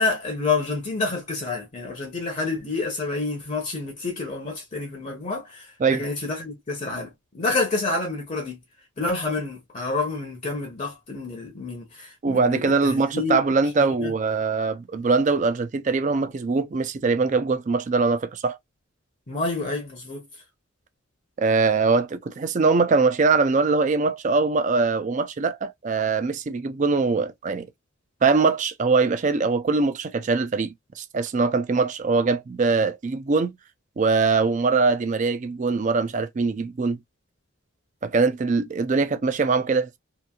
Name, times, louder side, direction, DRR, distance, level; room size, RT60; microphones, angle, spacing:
voice 1, 0.0-8.6 9.0-13.4 13.8-14.1 19.3-20.4, left 3 dB, 35° left, 0.6 m, -28 dB
voice 2, 12.2-18.6 21.4-27.7 28.2-33.5 34.0-37.0 38.0-40.0, right 4 dB, 35° right, 0.3 m, -22 dB
2.9 x 2.6 x 2.2 m
head